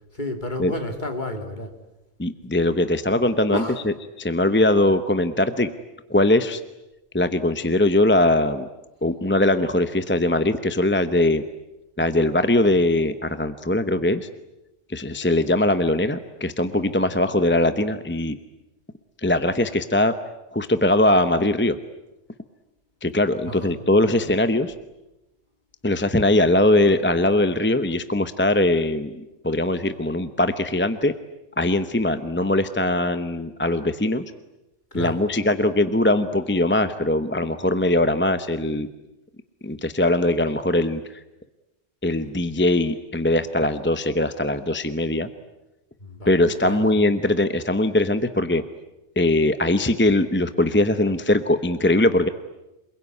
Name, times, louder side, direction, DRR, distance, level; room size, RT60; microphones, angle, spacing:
voice 1, 0.1-1.7 3.5-3.8 23.4-23.7 34.9-35.3 46.0-46.3 46.6-46.9, left 1 dB, 45° left, 4 dB, 3.3 m, -31 dB
voice 2, 2.2-5.7 6.1-6.6 7.1-8.7 9.0-11.4 12.0-14.3 14.9-18.4 19.2-20.1 20.5-21.8 23.0-24.7 25.8-31.1 31.6-34.2 34.9-38.9 39.6-41.2 42.0-45.3 46.3-48.6 49.2-52.3, left 1 dB, 10° left, 10 dB, 0.9 m, -21 dB
28.0 x 21.5 x 9.7 m, 1.0 s
omnidirectional pair, 1.2 m